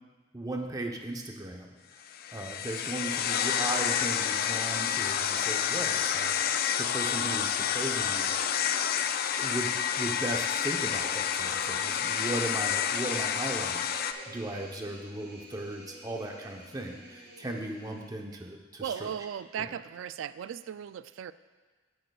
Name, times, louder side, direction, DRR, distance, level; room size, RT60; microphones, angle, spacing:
voice 1, 0.3-1.8 2.3-8.3 9.4-19.1 19.6-19.7, right 1 dB, 20° right, 1 dB, 0.8 m, -37 dB
sound 1, 2.1-14.1, left 8 dB, 50° left, 0.4 m, -29 dB
sound 2, 10.8-18.2, right 1 dB, 55° right, 2.7 m, -49 dB
voice 2, 18.8-21.3, right 8 dB, 75° right, 15 dB, 0.3 m, -37 dB
16.5 x 6.7 x 2.3 m, 1.4 s
head